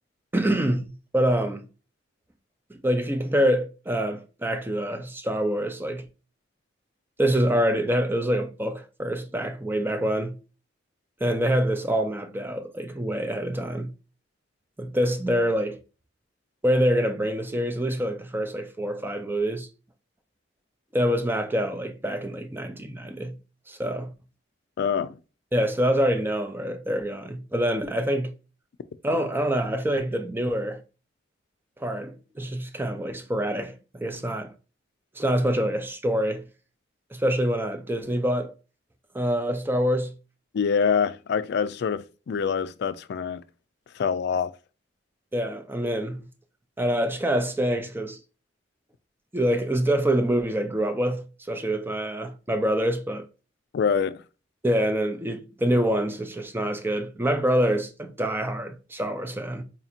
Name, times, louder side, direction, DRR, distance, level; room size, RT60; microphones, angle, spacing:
voice 1, 0.3-1.7 2.7-6.1 7.2-10.4 11.2-13.9 14.8-15.8 16.6-19.7 20.9-23.4 23.7-24.1 25.5-28.3 29.0-30.8 31.8-34.5 35.2-36.4 37.1-38.5 39.1-40.1 45.3-46.2 46.8-48.2 49.3-53.3 54.6-59.6, equal, 10° right, 0.5 m, -26 dB
voice 2, 24.8-25.2 40.5-43.4 44.0-44.5 53.7-54.2, left 6 dB, 60° left, 0.3 m, -25 dB
4.1 x 2.8 x 2.4 m
head